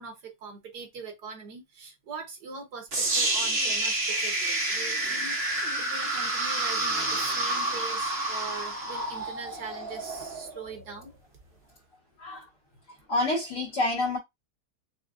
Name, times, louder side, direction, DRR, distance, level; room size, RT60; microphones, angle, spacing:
voice 1, 0.0-11.1, right 4 dB, 75° right, 1.8 m, -42 dB
sound 1, 2.9-11.0, right 2 dB, 40° right, 1.3 m, -29 dB
voice 2, 12.2-12.5 12.9-14.2, left 2 dB, 70° left, 2.0 m, -28 dB
6.2 x 2.3 x 2.5 m
omnidirectional pair, 1.8 m